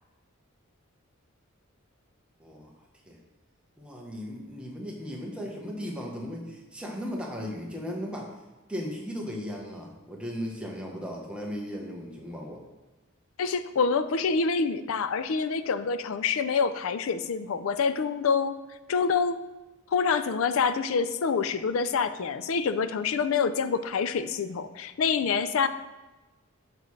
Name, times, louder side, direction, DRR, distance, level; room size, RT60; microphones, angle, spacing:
voice 1, 2.4-2.7 3.1-3.2 3.8-8.3 8.7-12.6, equal, 5° right, -2 dB, 1.0 m, -36 dB
voice 2, 13.4-18.6 18.9-19.4 19.9-25.7, left 5 dB, 70° left, 12 dB, 0.4 m, -26 dB
6.9 x 6.5 x 3.2 m, 1.1 s
head